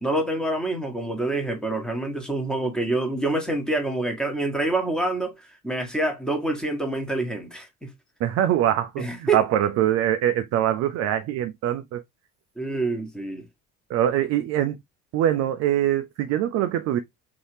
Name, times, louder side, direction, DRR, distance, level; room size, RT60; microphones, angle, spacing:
voice 1, 0.0-7.9 9.0-9.4 12.6-13.4, right 2 dB, ahead, 1.3 m, -26 dB
voice 2, 8.2-12.0 13.9-14.8 15.1-17.0, right 11 dB, 35° right, 0.4 m, -23 dB
3.9 x 2.8 x 3.2 m
figure-of-eight pair, 60°, 46 cm